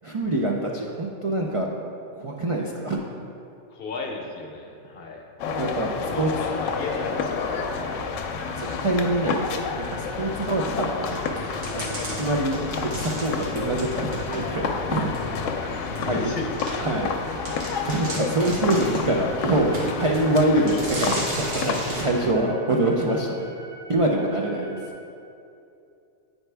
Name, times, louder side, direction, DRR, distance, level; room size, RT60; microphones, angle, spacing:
voice 1, 0.0-1.7 2.2-3.2 5.6-6.3 8.6-11.2 11.7-11.8 12.1-15.1 16.1-16.2 16.8-17.1 17.7-23.5 23.9-24.8, right 1 dB, 60° right, -1 dB, 0.3 m, -25 dB
voice 2, 3.7-5.2 5.9-8.2 15.9-16.9, left 3 dB, 55° left, 1 dB, 0.9 m, -36 dB
sound 1, 5.4-22.3, left 5 dB, 80° left, 0.9 m, -30 dB
sound 2, 6.5-24.9, right 2 dB, 25° right, 0.6 m, -45 dB
sound 3, 11.1-14.7 15.1-15.2 16.0-16.1 16.6-16.7 17.1-17.2 17.5-19.1 19.7-20.3 20.7-22.1, right 1 dB, 90° right, 1.7 m, -34 dB
9.1 x 4.4 x 3.3 m, 2.6 s
omnidirectional pair, 1.3 m